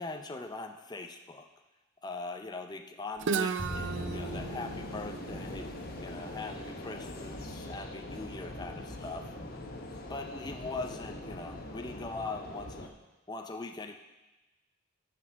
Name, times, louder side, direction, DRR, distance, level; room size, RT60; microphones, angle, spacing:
voice 1, 0.0-1.5 2.0-5.7 6.0-9.3 10.1-12.9 13.3-14.0, left 3 dB, 20° left, 5 dB, 0.5 m, -41 dB
Guitar, 3.2-7.0, right 5 dB, 60° right, 0.4 m, -36 dB
Bowed string instrument, 3.6-9.7, equal, ahead, 1.3 m, -47 dB
sound 1, 3.7-12.9, left 1 dB, 45° left, 1.0 m, -42 dB
9.3 x 6.3 x 5.9 m, 1.1 s
head